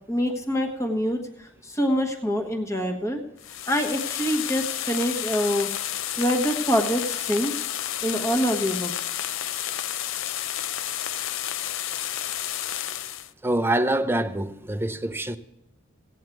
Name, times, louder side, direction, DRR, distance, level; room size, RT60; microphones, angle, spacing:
voice 1, 0.1-3.2 3.7-5.7 6.2-7.5 8.0-8.9, equal, 15° left, 1.3 m, -25 dB
sound 1, 3.4-13.3, left 11 dB, 70° left, 0.4 m, -31 dB
voice 2, 13.4-15.4, right 1 dB, 10° right, 0.5 m, -25 dB
16.5 x 9.0 x 4.6 m
head